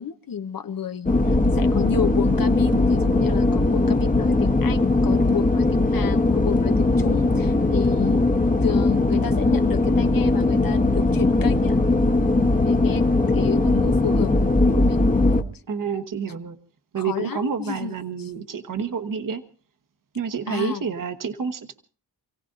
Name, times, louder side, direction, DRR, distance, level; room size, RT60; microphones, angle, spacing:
voice 1, 0.0-8.3 8.6-11.8 12.6-13.1 13.3-14.3 14.7-15.1 17.0-18.3 20.5-20.8, left 8 dB, 60° left, 9 dB, 0.9 m, -31 dB
sound 1, 1.1-15.4, left 2 dB, 20° left, 1.1 m, -20 dB
voice 2, 15.7-16.6 16.9-19.4 20.1-21.8, right 6 dB, 55° right, 9 dB, 1.2 m, -29 dB
28.5 x 17.0 x 2.6 m, 0.37 s
wide cardioid pair, 170°, 38 cm